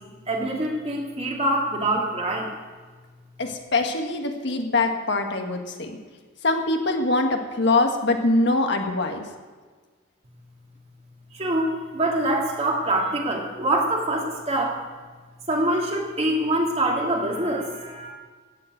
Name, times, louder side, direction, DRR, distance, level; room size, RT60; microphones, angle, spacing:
voice 1, 0.3-2.5 11.3-14.8 15.5-18.1, right 1 dB, 35° right, 0 dB, 2.6 m, -25 dB
voice 2, 3.4-6.0 6.4-9.2, left 2 dB, 65° left, 4 dB, 1.6 m, -23 dB
14.5 x 7.7 x 9.0 m, 1.5 s
head